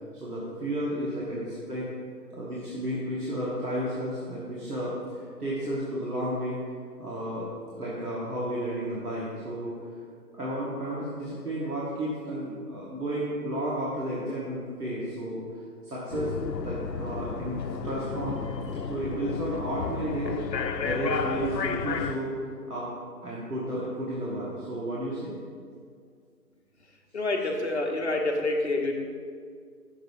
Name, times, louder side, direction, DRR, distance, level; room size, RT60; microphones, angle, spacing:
voice 1, 0.1-1.9 2.3-6.6 7.0-7.5 7.8-9.9 10.4-16.3 16.6-18.4 18.9-20.4 20.8-22.3 22.7-22.9 23.2-25.3, right 1 dB, 65° right, -7 dB, 1.6 m, -32 dB
sound 1, 16.1-22.1, left 5 dB, 85° left, 0.7 m, -32 dB
voice 2, 27.1-28.9, left 2 dB, 45° left, 1 dB, 0.8 m, -27 dB
6.5 x 4.8 x 4.8 m, 2.1 s
figure-of-eight pair, 165°, 49 cm